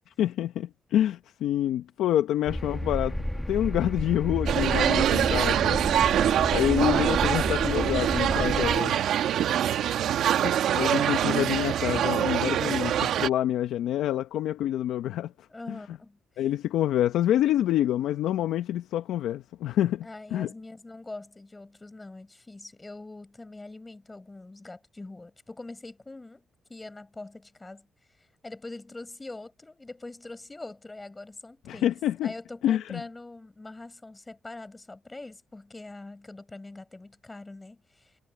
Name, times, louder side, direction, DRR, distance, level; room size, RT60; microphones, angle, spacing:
voice 1, 0.2-6.2 6.5-8.9 10.4-15.3 15.7-15.8 16.4-20.1 20.3-20.5 31.7-32.3 32.6-33.0, left 12 dB, 80° left, 0.8 m, -27 dB
sound 1, 2.5-8.8, equal, 5° left, 1.9 m, -32 dB
sound 2, 4.5-13.3, right 10 dB, 75° right, 1.5 m, -24 dB
voice 2, 10.9-11.3 15.5-16.2 20.0-26.4 26.7-27.9 28.2-32.0 32.2-38.2, left 2 dB, 20° left, 5.2 m, -43 dB
cardioid pair, 90°, 0 cm